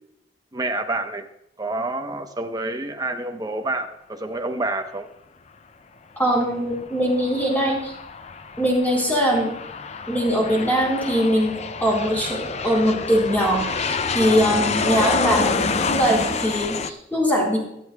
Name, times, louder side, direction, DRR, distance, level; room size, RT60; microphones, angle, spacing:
voice 1, 0.5-1.2 1.6-5.1, right 2 dB, 20° right, 5 dB, 0.9 m, -28 dB
voice 2, 6.2-7.9 8.6-9.5 10.1-17.6, equal, 10° left, -1 dB, 4.2 m, -21 dB
Aircraft, 6.7-16.9, left 4 dB, 40° left, 0.5 m, -28 dB
24.0 x 8.6 x 2.3 m, 0.81 s
head